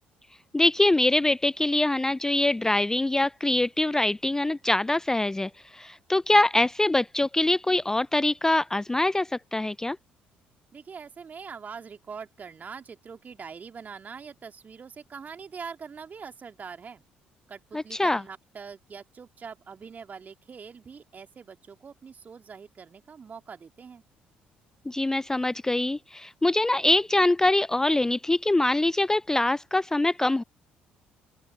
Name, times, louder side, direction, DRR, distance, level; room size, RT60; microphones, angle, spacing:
voice 1, 0.5-10.0 17.7-18.2 24.9-30.4, left 2 dB, 10° left, 0.4 m, -24 dB
voice 2, 10.7-17.0 17.5-24.0, right 6 dB, 40° right, 2.9 m, -43 dB
open air
figure-of-eight pair, 50°, 5 cm